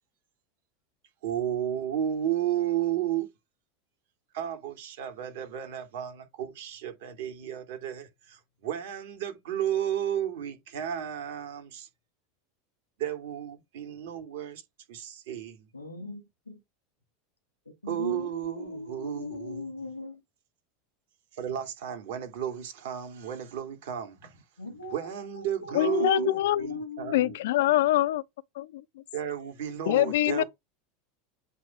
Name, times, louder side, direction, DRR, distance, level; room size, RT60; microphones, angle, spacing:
voice 1, 1.2-3.3 4.3-11.9 13.0-14.6 14.9-15.7 17.9-19.6 21.3-24.4 24.9-27.3 29.1-30.4, right 10 dB, 65° right, 2.6 m, -33 dB
voice 2, 15.7-16.6 17.8-20.2 24.6-27.4 29.9-30.4, left 2 dB, 90° left, 1.5 m, -39 dB
voice 3, 25.7-26.7 27.1-28.2 28.6-29.0 29.9-30.4, left 14 dB, 65° left, 0.5 m, -24 dB
8.1 x 3.2 x 4.7 m
figure-of-eight pair, 80°, 0 cm